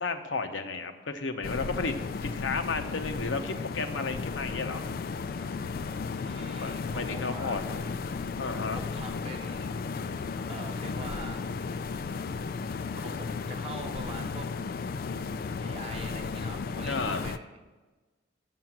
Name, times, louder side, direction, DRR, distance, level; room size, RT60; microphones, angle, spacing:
voice 1, 0.0-1.9 2.2-4.8 6.6-7.6 8.4-8.8 16.9-17.3, left 4 dB, 80° left, 6 dB, 0.8 m, -33 dB
sound 1, 1.4-17.4, left 4 dB, 50° left, 0.3 m, -34 dB
voice 2, 6.2-7.9 8.7-9.8 10.5-11.5 13.0-14.5 15.6-17.6, right 2 dB, 30° right, 3 dB, 1.1 m, -44 dB
7.6 x 6.9 x 7.5 m, 1.2 s
head